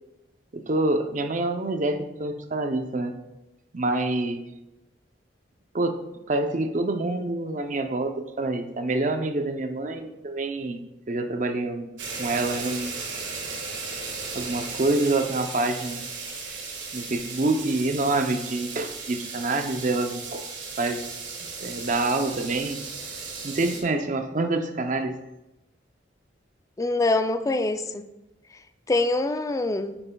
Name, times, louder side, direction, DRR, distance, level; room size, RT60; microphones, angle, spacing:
voice 1, 0.5-3.2 3.7-4.4 5.7-6.0 6.3-11.9 12.2-12.9 14.3-16.0 16.9-20.5 20.8-21.0 21.6-22.8 23.4-25.2, right 2 dB, 40° right, 7 dB, 0.6 m, -26 dB
sound 1, 12.0-23.8, right 4 dB, 80° right, 1.7 m, -36 dB
voice 2, 26.8-28.1 28.9-30.0, left 2 dB, 15° left, 9 dB, 0.4 m, -24 dB
8.8 x 8.8 x 2.3 m, 0.96 s
head